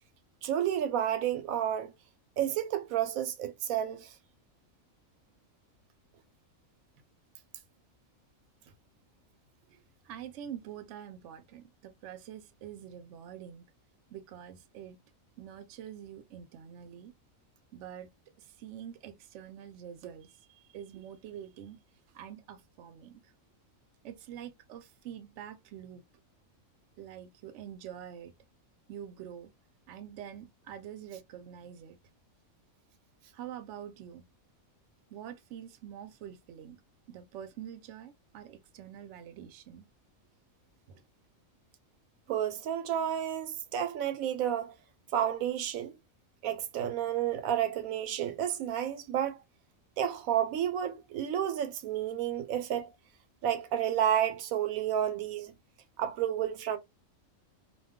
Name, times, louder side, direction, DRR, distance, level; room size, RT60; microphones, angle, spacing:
voice 1, 0.4-1.9 2.4-4.1 42.3-44.7 45.1-45.9 46.4-49.4 50.0-52.9 53.4-55.5 56.0-56.8, right 10 dB, 90° right, 1.0 m, -31 dB
voice 2, 9.7-13.6 14.1-15.0 15.4-17.1 17.7-18.1 18.4-21.8 22.1-23.3 24.0-26.0 27.0-28.3 28.9-29.5 29.9-32.0 33.3-34.2 35.1-36.8 37.1-39.9 40.9-41.0, right 9 dB, 65° right, 0.8 m, -46 dB
2.4 x 2.2 x 3.5 m
omnidirectional pair, 1.4 m